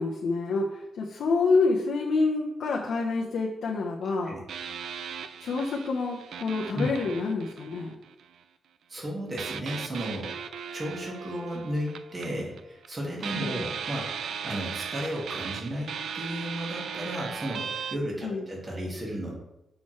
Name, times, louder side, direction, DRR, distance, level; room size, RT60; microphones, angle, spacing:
voice 1, 0.0-4.3 5.4-8.0 13.3-13.6 18.2-18.5, left 3 dB, 70° left, -2 dB, 0.9 m, -27 dB
sound 1, 4.5-8.4 9.4-12.9 13.2-18.0, right 7 dB, 75° right, 0.4 m, -37 dB
voice 2, 8.9-10.3 10.7-14.1 14.4-19.4, equal, 25° right, -2 dB, 1.8 m, -34 dB
7.4 x 6.0 x 3.2 m, 0.92 s
wide cardioid pair, 160°, 0 cm